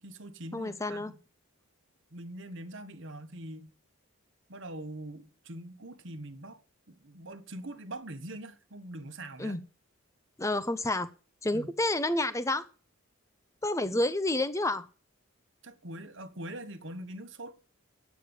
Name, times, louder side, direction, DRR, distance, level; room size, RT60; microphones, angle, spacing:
voice 1, 0.0-1.2 2.1-3.7 4.5-6.6 6.9-9.6 11.5-11.7 15.6-17.6, right 1 dB, 55° right, 1.2 m, -43 dB
voice 2, 0.5-1.1 9.4-9.6 10.4-11.1 11.4-12.7 13.6-14.9, left 2 dB, 15° left, 0.8 m, -29 dB
9.6 x 8.5 x 6.9 m
head